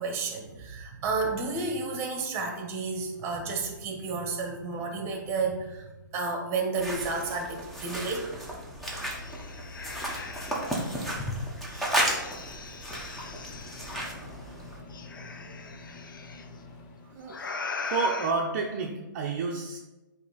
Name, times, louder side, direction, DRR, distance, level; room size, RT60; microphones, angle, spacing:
voice 1, 0.0-5.9 6.1-8.3 15.2-15.3 15.6-15.9, right 4 dB, 25° right, 3 dB, 1.2 m, -31 dB
sound 1, 6.8-14.8, right 1 dB, ahead, 1.0 m, -33 dB
sound 2, 8.1-8.2 8.5-10.9 11.7-14.0 14.9-16.4 17.3-18.3, left 4 dB, 75° left, 0.7 m, -40 dB
Microwave oven, 12.2-12.3 13.2-17.5, left 3 dB, 30° left, 0.7 m, -47 dB
voice 2, 17.1-17.5 17.8-19.8, right 4 dB, 40° right, -1 dB, 0.7 m, -30 dB
8.2 x 2.9 x 4.1 m, 1.1 s
hypercardioid pair, 140°, 11 cm